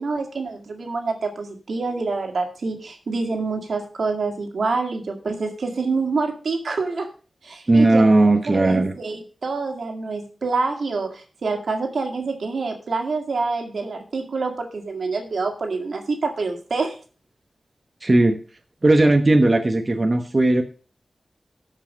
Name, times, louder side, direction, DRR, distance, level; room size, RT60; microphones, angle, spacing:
voice 1, 0.0-7.1 7.4-8.2 8.5-17.0, right 4 dB, 80° right, 4 dB, 2.0 m, -26 dB
voice 2, 7.7-8.9 18.0-18.4 18.8-20.6, right 2 dB, 35° right, 5 dB, 1.0 m, -17 dB
13.0 x 5.5 x 5.2 m, 0.38 s
wide cardioid pair, 75°, 0 cm